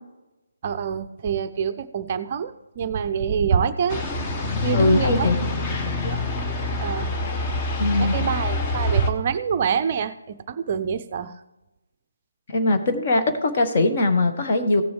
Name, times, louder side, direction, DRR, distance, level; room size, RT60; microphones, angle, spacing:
voice 1, 0.6-4.0 4.6-5.3 6.0-6.2 6.8-7.1 8.0-11.4, right 7 dB, 35° right, 10 dB, 0.5 m, -25 dB
sound 1, 3.9-9.1, left 3 dB, 20° left, 1.0 m, -26 dB
voice 2, 4.7-5.4 7.8-8.1 12.5-14.8, left 2 dB, 35° left, 5 dB, 1.3 m, -21 dB
16.5 x 6.8 x 3.2 m, 1.0 s
figure-of-eight pair, 145°, 0 cm